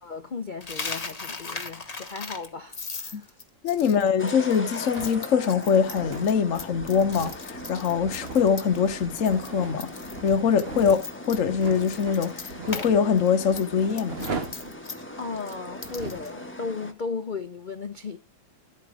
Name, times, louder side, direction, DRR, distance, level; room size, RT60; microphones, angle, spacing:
voice 1, 0.0-3.3 3.8-4.0 15.2-18.2, left 4 dB, 80° left, 0.4 m, -35 dB
Coin (dropping), 0.6-8.9 9.2-9.5 9.8-12.9 13.2-16.3, left 4 dB, 25° left, 1.2 m, -38 dB
voice 2, 3.6-9.9 10.2-14.3, left 6 dB, 50° left, 1.1 m, -23 dB
sound 1, 4.2-16.9, left 1 dB, 5° left, 1.3 m, -40 dB
sound 2, 5.0-16.3, right 3 dB, 35° right, 1.5 m, -40 dB
11.5 x 8.9 x 4.8 m
omnidirectional pair, 2.0 m